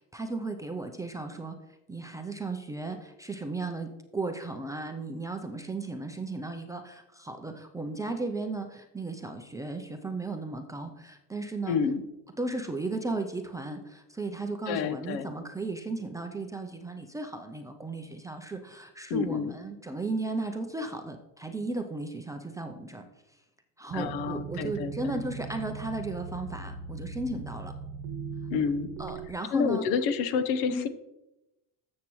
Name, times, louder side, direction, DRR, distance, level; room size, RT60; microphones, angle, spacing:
voice 1, 0.0-1.6 1.9-11.8 12.4-23.1 23.8-27.7 29.0-29.8 30.7-30.8, right 2 dB, 10° right, 5 dB, 0.4 m, -35 dB
voice 2, 11.7-12.0 14.7-15.3 19.1-19.5 23.9-25.2 28.5-28.9 29.5-30.9, left 6 dB, 70° left, 11 dB, 1.0 m, -29 dB
sound 1, 23.9-29.3, right 5 dB, 65° right, 1.0 m, -39 dB
13.0 x 7.4 x 3.1 m, 0.93 s
cardioid pair, 140°, 42 cm